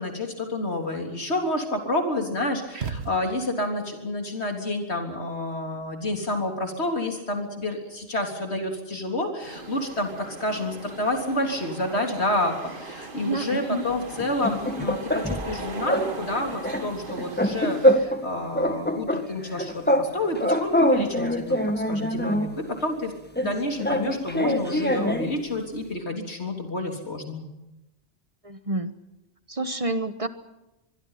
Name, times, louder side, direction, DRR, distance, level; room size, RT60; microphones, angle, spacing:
voice 1, 0.0-21.6 21.9-23.1 23.4-27.5, left 1 dB, 90° left, 3 dB, 3.8 m, -29 dB
sound 1, 2.7-3.8, right 5 dB, 80° right, 1.6 m, -35 dB
sound 2, 9.4-17.9, right 3 dB, 55° right, 1.9 m, -39 dB
voice 2, 13.1-13.9 28.4-28.9 29.5-30.3, right 2 dB, 35° right, 10 dB, 1.3 m, -29 dB
sound 3, 14.2-15.5 15.9-16.1 16.4-18.3 18.5-20.1 20.4-22.5 23.4-25.3, equal, 10° left, 1.6 m, -24 dB
24.0 x 23.0 x 5.8 m, 0.94 s
omnidirectional pair, 1.1 m